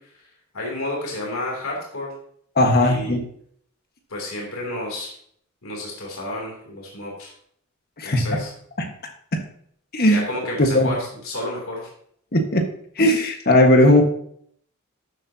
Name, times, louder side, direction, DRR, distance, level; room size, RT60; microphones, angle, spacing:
voice 1, 0.5-2.1 2.8-3.1 4.1-5.1 5.6-7.3 8.0-8.5 10.1-11.9, left 1 dB, 80° left, -2 dB, 3.0 m, -31 dB
voice 2, 2.6-3.2 8.0-8.4 8.8-8.9 9.9-10.2 10.6-10.9 12.3-12.6 13.0-14.0, left 1 dB, 50° left, 4 dB, 1.5 m, -17 dB
12.5 x 7.6 x 2.8 m, 0.65 s
head